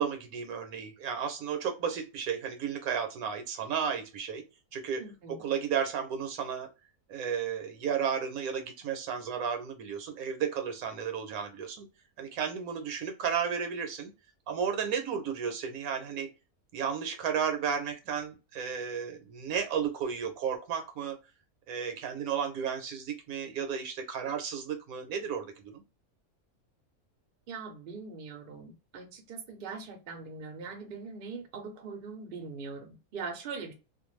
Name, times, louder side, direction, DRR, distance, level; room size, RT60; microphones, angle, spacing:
voice 1, 0.0-4.4 4.7-5.0 5.3-6.7 7.1-11.9 12.2-14.1 14.5-16.3 16.7-21.2 21.7-25.8, right 7 dB, 75° right, 1.1 m, -33 dB
voice 2, 5.0-5.4 27.5-33.7, right 4 dB, 50° right, 0.6 m, -41 dB
2.5 x 2.2 x 3.0 m
omnidirectional pair, 1.6 m